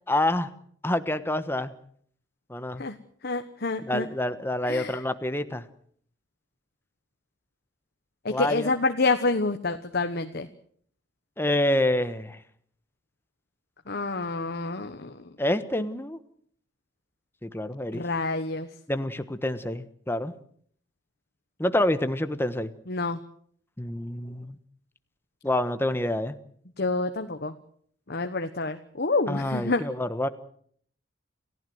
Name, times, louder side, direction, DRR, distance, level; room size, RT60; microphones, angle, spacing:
voice 1, 0.1-0.5 0.8-1.7 2.5-2.8 3.8-5.6 8.3-8.7 11.4-12.4 15.4-16.2 17.4-18.0 18.9-20.3 21.6-22.7 23.8-24.6 25.4-26.4 29.3-30.3, left 1 dB, 10° left, 11 dB, 1.2 m, -27 dB
voice 2, 3.2-4.1 4.7-5.0 8.2-10.5 13.9-15.1 17.9-18.7 22.9-23.2 26.8-27.5 28.1-29.8, left 3 dB, 55° left, 7 dB, 1.2 m, -28 dB
29.0 x 15.5 x 7.9 m, 0.63 s
head